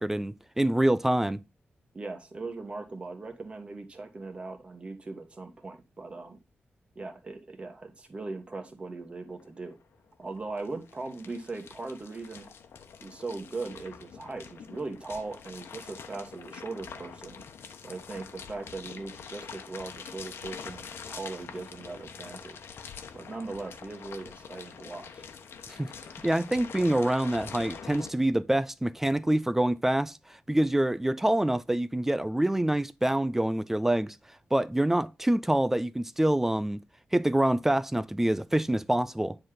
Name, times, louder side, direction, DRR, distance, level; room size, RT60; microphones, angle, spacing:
voice 1, 0.0-1.4 25.7-25.9 26.2-30.2 30.5-34.2 34.5-36.8 37.1-39.4, right 1 dB, 10° right, 0.3 m, -26 dB
voice 2, 1.9-6.4 6.9-9.8 10.2-12.5 13.0-17.4 17.8-22.6 23.1-25.3, right 3 dB, 25° right, 1.5 m, -39 dB
sound 1, 9.4-9.5 9.7-28.1, left 6 dB, 80° left, 1.0 m, -45 dB
9.8 x 4.0 x 5.1 m
wide cardioid pair, 160°, 4 cm